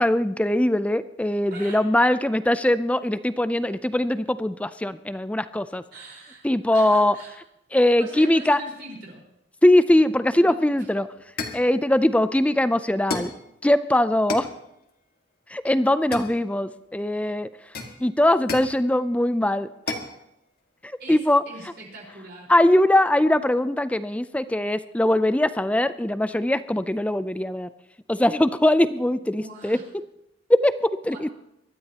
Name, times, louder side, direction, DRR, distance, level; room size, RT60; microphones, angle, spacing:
voice 1, 0.0-5.8 6.4-7.2 7.7-8.6 9.6-11.1 11.5-13.3 13.6-14.5 15.5-17.5 18.0-19.7 20.8-21.4 22.5-27.7 28.1-29.8 30.5-31.3, left 1 dB, 5° left, 13 dB, 0.4 m, -21 dB
voice 2, 1.5-1.8 5.9-6.5 6.7-7.4 8.0-9.2 10.3-10.5 13.1-13.2 21.0-22.5 29.4-29.8 31.1-31.3, right 2 dB, 55° right, -3 dB, 4.5 m, -42 dB
sound 1, 10.7-10.8 11.4-11.7 13.1-13.4 14.3-14.6 16.1-16.8 17.7-18.8 19.9-20.2, left 3 dB, 50° left, 1.8 m, -32 dB
24.0 x 12.5 x 2.9 m, 0.83 s
head